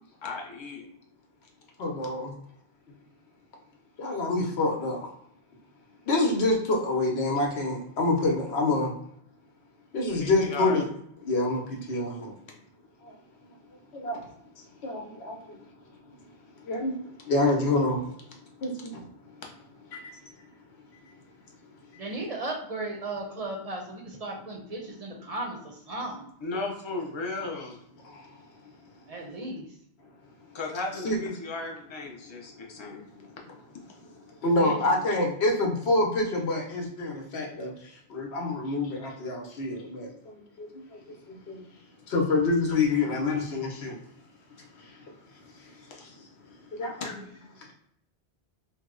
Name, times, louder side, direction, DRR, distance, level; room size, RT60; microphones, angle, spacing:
voice 1, 0.2-0.8 10.2-10.8 26.4-27.8 30.5-33.1 45.9-46.0 47.0-47.1, left 3 dB, 35° left, 0 dB, 0.5 m, -35 dB
voice 2, 1.8-2.3 4.0-5.1 6.1-8.9 9.9-10.9 11.2-12.3 13.0-13.1 13.9-14.2 14.8-15.4 16.6-16.9 17.2-18.0 18.6-19.0 19.9-20.0 27.4-27.6 28.0-28.2 31.0-31.3 34.4-41.0 41.3-41.6 42.1-43.9 44.8-45.0 46.0-46.1 46.7-47.2, left 2 dB, 80° left, 1 dB, 1.0 m, -27 dB
voice 3, 22.0-26.3 29.1-29.7 34.6-35.0 47.1-47.3, right 2 dB, 45° right, 0 dB, 0.6 m, -36 dB
2.8 x 2.0 x 3.7 m, 0.71 s
omnidirectional pair, 1.1 m